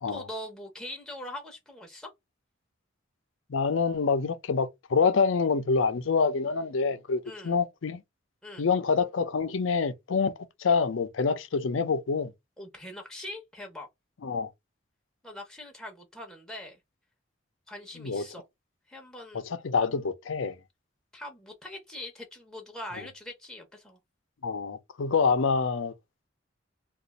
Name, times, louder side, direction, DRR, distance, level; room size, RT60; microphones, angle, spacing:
voice 1, 0.1-2.1 7.2-7.5 8.4-8.6 12.6-13.9 15.2-16.8 17.7-18.4 18.9-19.5 21.1-24.0, left 1 dB, 5° left, 0.7 m, -42 dB
voice 2, 3.5-8.0 8.6-10.3 10.6-12.3 14.2-14.5 18.0-18.2 19.5-20.6 24.4-25.9, left 5 dB, 75° left, 0.5 m, -26 dB
2.5 x 2.3 x 4.0 m
head